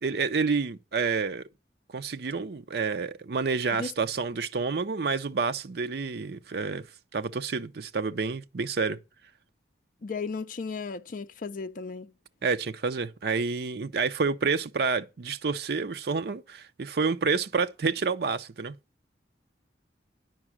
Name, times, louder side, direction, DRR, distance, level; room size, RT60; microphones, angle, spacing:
voice 1, 0.0-1.5 1.9-6.9 7.1-9.0 12.4-18.8, right 4 dB, 60° right, 0.6 m, -29 dB
voice 2, 10.0-12.1, left 4 dB, 50° left, 0.5 m, -35 dB
9.8 x 6.1 x 6.1 m
head